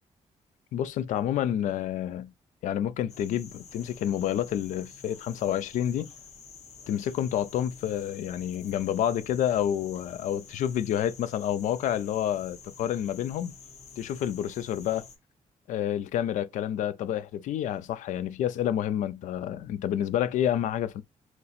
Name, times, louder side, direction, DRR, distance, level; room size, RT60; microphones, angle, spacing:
voice 1, 0.7-2.3 2.6-6.1 6.9-13.5 14.0-15.1 15.7-21.0, left 10 dB, 75° left, 0.4 m, -29 dB
sound 1, 3.1-15.2, left 5 dB, 55° left, 1.1 m, -49 dB
4.0 x 3.0 x 2.5 m
cardioid pair, 145°, 13 cm